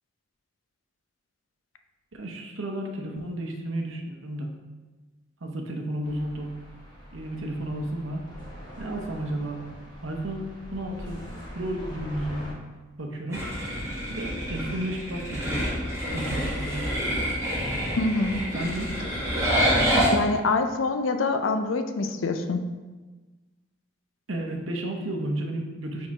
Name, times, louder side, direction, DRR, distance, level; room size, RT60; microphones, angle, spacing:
voice 1, 2.1-4.5 5.4-6.5 7.1-8.2 8.8-9.6 10.0-11.2 11.5-12.5 13.0-13.5 14.1-15.7 16.1-16.9 18.5-19.0 24.3-26.1, right 1 dB, 75° right, 2 dB, 0.9 m, -32 dB
sound 1, 6.0-12.5, equal, 20° left, 1.3 m, -43 dB
sound 2, 13.3-20.1, equal, 15° right, 1.5 m, -27 dB
voice 2, 18.0-18.4 20.1-22.6, left 3 dB, 75° left, 7 dB, 0.5 m, -25 dB
4.7 x 4.4 x 4.7 m, 1.3 s
head